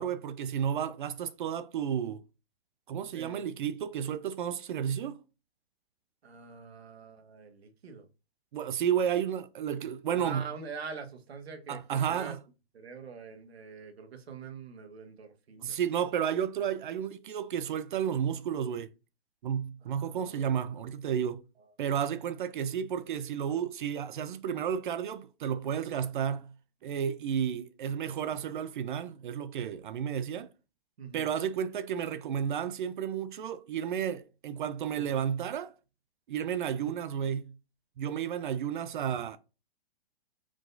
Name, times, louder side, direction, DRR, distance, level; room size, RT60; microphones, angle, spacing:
voice 1, 0.0-2.2 2.9-5.2 8.5-10.5 11.7-12.4 15.6-18.9 19.4-21.4 21.8-26.5 26.8-30.5 31.1-35.7 36.3-37.5 38.0-39.4, right 8 dB, 55° right, 0.5 m, -32 dB
voice 2, 3.1-3.5 6.2-8.1 9.0-9.1 10.1-12.4 12.7-15.8 19.9-20.8 28.2-28.5 31.0-31.3 34.9-35.0 36.8-37.0, right 5 dB, 80° right, 1.3 m, -45 dB
4.7 x 4.0 x 2.6 m
hypercardioid pair, 150°, 31 cm